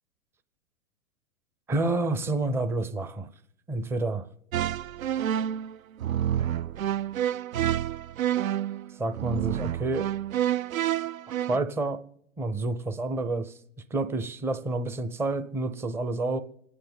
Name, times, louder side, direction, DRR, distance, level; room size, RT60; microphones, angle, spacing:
voice 1, 1.7-3.3 3.7-4.3 9.0-10.1 11.5-12.0 12.4-13.5 13.9-16.4, right 2 dB, 5° right, 0.5 m, -29 dB
sound 1, 4.5-11.6, right 11 dB, 80° right, 0.5 m, -28 dB
27.0 x 9.4 x 3.7 m
figure-of-eight pair, 110°, 40 cm